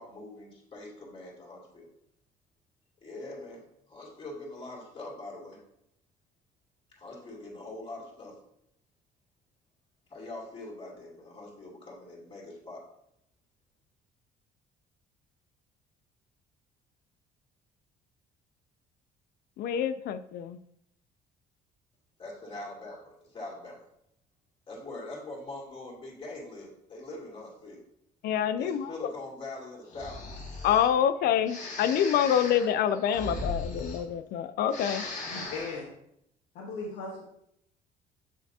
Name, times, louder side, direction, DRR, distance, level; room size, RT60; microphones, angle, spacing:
voice 1, 0.0-1.9 3.0-3.6 3.9-5.6 7.0-8.4 10.1-12.8 22.2-23.8 24.7-27.8 28.6-30.2, left 2 dB, 30° left, -4 dB, 2.5 m, -43 dB
voice 2, 19.6-20.6 28.2-29.1 30.6-35.0, left 9 dB, 70° left, 13 dB, 0.5 m, -26 dB
Breathing, 29.9-30.9 31.5-34.4 34.6-35.8, left 2 dB, 45° left, 1.8 m, -38 dB
voice 3, 35.0-35.9 36.5-37.2, left 3 dB, 85° left, -4 dB, 1.4 m, -38 dB
7.2 x 5.7 x 2.8 m, 0.75 s
cardioid pair, 110°, 17 cm